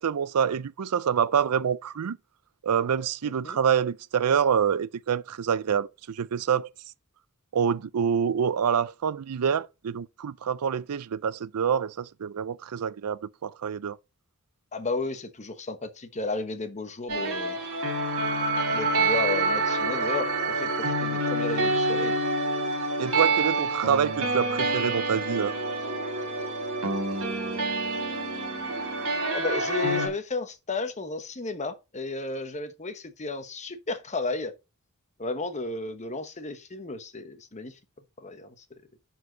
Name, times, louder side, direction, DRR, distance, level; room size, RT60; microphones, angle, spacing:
voice 1, 0.0-2.2 2.6-6.7 7.5-14.0 23.0-25.5, right 7 dB, 90° right, 0.5 m, -26 dB
voice 2, 3.2-3.6 14.7-17.6 18.7-22.1 28.0-34.5 35.2-37.8 38.2-38.8, left 3 dB, 30° left, 1.1 m, -33 dB
sound 1, 17.1-30.1, right 2 dB, 65° right, 3.6 m, -27 dB
11.0 x 4.5 x 4.0 m
head